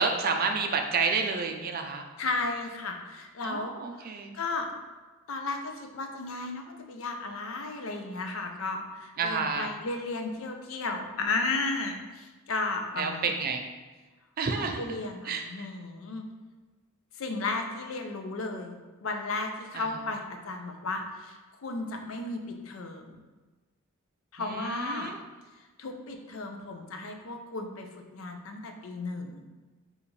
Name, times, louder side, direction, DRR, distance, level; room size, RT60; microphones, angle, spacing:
voice 1, 0.0-2.0 3.4-4.4 9.2-9.7 13.0-13.6 14.4-14.8 15.2-15.7 19.7-19.8 24.4-25.2, right 5 dB, 45° right, 4 dB, 0.4 m, -29 dB
voice 2, 2.2-4.7 5.3-13.3 14.5-16.2 17.2-23.2 24.3-25.1 25.8-29.4, left 3 dB, 65° left, 4 dB, 0.5 m, -34 dB
4.9 x 2.5 x 3.1 m, 1.3 s
head